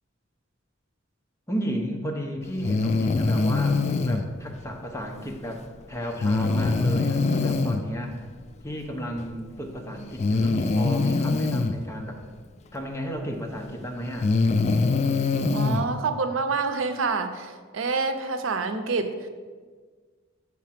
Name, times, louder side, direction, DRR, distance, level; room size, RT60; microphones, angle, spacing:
voice 1, 1.5-5.6 5.9-8.2 8.6-12.2 12.7-14.3, equal, 15° left, 2 dB, 0.7 m, -33 dB
Breathing, 2.6-4.2 6.2-7.8 9.2-9.3 10.2-11.7 13.3-13.4 14.1-15.8, left 3 dB, 35° left, 0.3 m, -23 dB
voice 2, 15.5-19.2, right 4 dB, 85° right, 8 dB, 0.6 m, -27 dB
7.6 x 3.6 x 5.7 m, 1.5 s
head